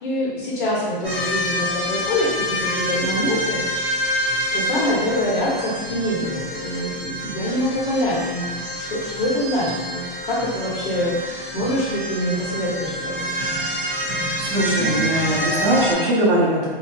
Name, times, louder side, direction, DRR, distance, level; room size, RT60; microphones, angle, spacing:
voice 1, 0.0-3.6 4.5-13.3, left 1 dB, 55° left, -7 dB, 1.1 m, -25 dB
sound 1, 1.0-15.9, equal, 10° right, 0.3 m, -27 dB
voice 2, 14.0-16.7, right 1 dB, 65° right, -5 dB, 0.9 m, -21 dB
2.7 x 2.2 x 2.7 m, 1.4 s
hypercardioid pair, 175°, 29 cm